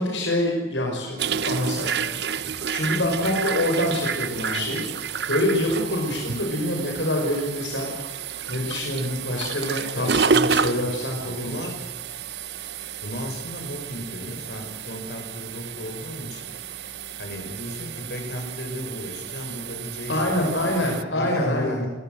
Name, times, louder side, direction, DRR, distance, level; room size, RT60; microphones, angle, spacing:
voice 1, 0.0-2.2 2.4-4.8 5.3-11.6 20.1-21.8, left 1 dB, 85° left, 0 dB, 5.6 m, -26 dB
sound 1, 1.2-21.0, right 6 dB, 65° right, 0.9 m, -30 dB
voice 2, 11.2-11.7 13.0-16.5 17.2-21.9, left 1 dB, 65° left, 3 dB, 6.7 m, -34 dB
25.0 x 19.0 x 7.9 m, 1.2 s
head